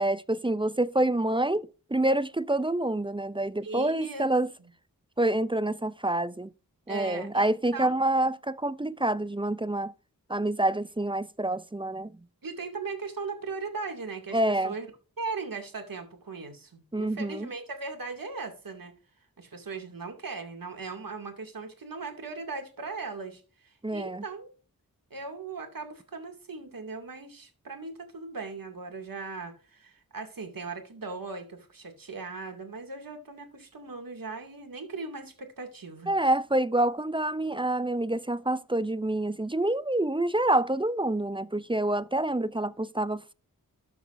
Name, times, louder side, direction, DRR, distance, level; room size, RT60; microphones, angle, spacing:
voice 1, 0.0-4.5 5.2-6.5 6.9-9.9 10.3-12.1 14.3-14.7 16.9-17.5 23.8-24.2 36.1-43.3, right 1 dB, 15° right, 0.5 m, -27 dB
voice 2, 3.6-4.3 6.9-8.0 12.4-14.9 15.2-18.9 19.4-24.5 25.1-36.1, right 4 dB, 70° right, 2.4 m, -38 dB
12.5 x 7.0 x 2.6 m
wide cardioid pair, 80°, 35 cm